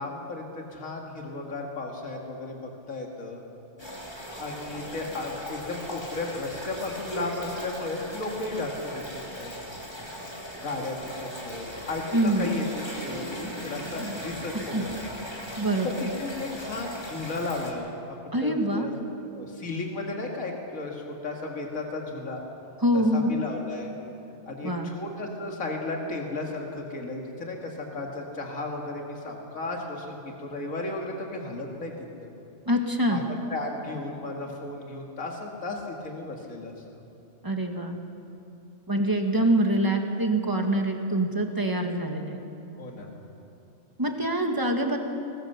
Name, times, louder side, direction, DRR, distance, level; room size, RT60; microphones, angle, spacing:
voice 1, 0.0-3.4 4.4-9.5 10.6-12.6 13.0-15.1 15.8-18.9 19.3-22.4 22.9-23.9 24.5-31.9 32.2-32.3 33.1-33.2 33.5-36.7 42.8-43.1, left 2 dB, 90° left, 0 dB, 2.4 m, -34 dB
sound 1, 3.8-17.7, equal, 20° left, 2.7 m, -38 dB
voice 2, 12.1-12.6 14.0-14.2 14.5-14.9 15.6-16.1 18.3-19.0 22.8-23.3 24.6-24.9 32.6-33.2 37.4-38.0 38.9-42.4 44.0-45.0, right 1 dB, 15° right, 3 dB, 1.7 m, -25 dB
21.5 x 20.5 x 6.7 m, 2.7 s
omnidirectional pair, 1.4 m